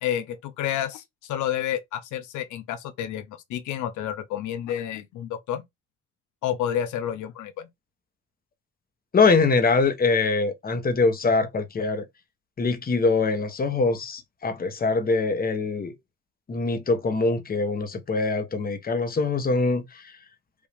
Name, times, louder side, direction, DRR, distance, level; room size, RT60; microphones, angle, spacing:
voice 1, 0.0-5.6 6.4-7.7, left 10 dB, 85° left, 0.7 m, -30 dB
voice 2, 9.1-12.0 12.6-15.9 16.5-20.1, left 4 dB, 30° left, 1.1 m, -23 dB
5.1 x 2.6 x 3.4 m
cardioid pair, 110°, 29 cm